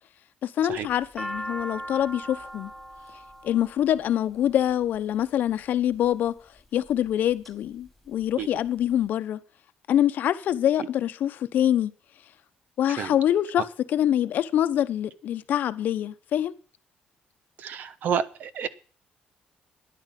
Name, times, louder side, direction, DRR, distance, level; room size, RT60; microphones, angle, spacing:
voice 1, 0.4-2.7 3.4-6.3 6.7-9.4 9.9-11.9 12.8-16.5, left 11 dB, 65° left, 0.9 m, -25 dB
sound 1, 0.7-5.0 5.8-6.3 6.9-7.5 7.9-9.0, equal, 5° right, 3.0 m, -39 dB
voice 2, 17.6-18.7, right 8 dB, 65° right, 1.0 m, -30 dB
12.5 x 10.0 x 5.9 m
cardioid pair, 125°, 3 cm